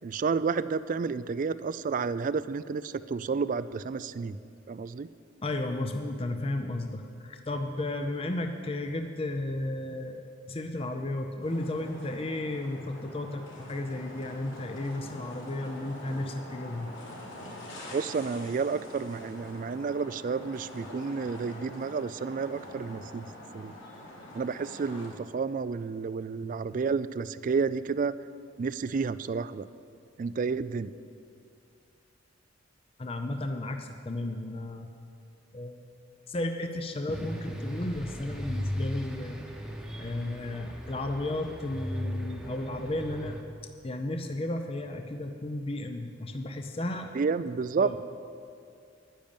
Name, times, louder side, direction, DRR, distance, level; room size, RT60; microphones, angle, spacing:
voice 1, 0.0-4.4 4.7-5.1 17.9-23.7 24.3-28.2 28.6-29.7 30.2-30.9 47.1-47.9, right 5 dB, 40° right, 15 dB, 0.3 m, -31 dB
voice 2, 5.4-16.9 33.0-34.9 35.5-35.8 36.3-39.4 40.0-43.4 43.8-47.1 47.8-48.0, left 1 dB, 30° left, 5 dB, 0.6 m, -33 dB
sound 1, 11.4-25.1, left 1 dB, 75° left, 3.3 m, -45 dB
sound 2, 37.1-43.4, equal, ahead, 1.0 m, -37 dB
10.5 x 10.0 x 7.1 m, 2.4 s
head